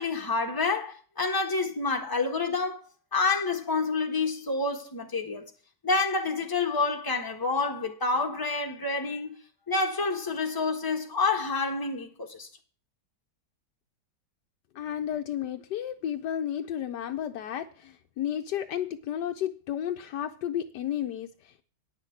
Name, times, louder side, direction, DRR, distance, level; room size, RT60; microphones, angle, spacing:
voice 1, 0.0-2.8 3.1-5.5 5.8-9.3 9.7-12.5, left 3 dB, 15° left, 1.2 m, -28 dB
voice 2, 14.7-21.6, left 10 dB, 75° left, 1.3 m, -32 dB
9.6 x 6.0 x 8.4 m
omnidirectional pair, 1.9 m